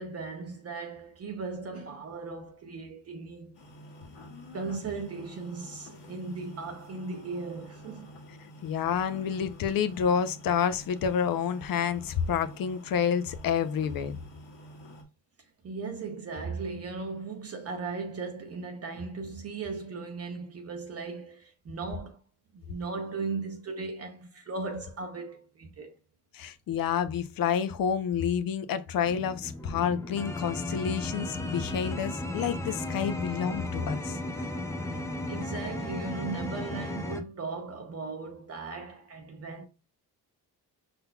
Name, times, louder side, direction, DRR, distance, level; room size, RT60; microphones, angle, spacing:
voice 1, 0.0-3.6 4.5-8.1 15.6-22.2 22.5-25.9 34.9-39.7, right 4 dB, 40° right, 0.7 m, -37 dB
sound 1, 3.5-15.0, left 1 dB, 80° left, 1.7 m, -49 dB
voice 2, 8.6-14.2 26.3-34.2, left 7 dB, 60° left, 0.7 m, -29 dB
sound 2, 29.0-37.2, left 1 dB, 10° left, 0.6 m, -35 dB
5.5 x 4.0 x 2.2 m
cardioid pair, 135°, 39 cm